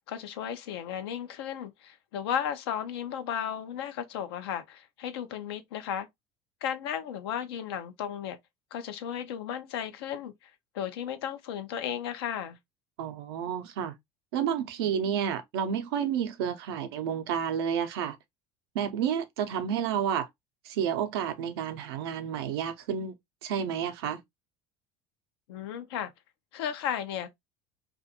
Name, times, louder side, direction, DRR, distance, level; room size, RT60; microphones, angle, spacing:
voice 1, 0.0-6.1 6.6-8.4 8.7-12.6 25.5-26.1 26.5-27.3, left 9 dB, 90° left, 0.6 m, -34 dB
voice 2, 13.0-13.9 14.3-18.2 18.7-20.3 20.6-23.1 23.4-24.2, right 8 dB, 90° right, 0.6 m, -30 dB
2.5 x 2.4 x 2.7 m
supercardioid pair, 100°, 13 cm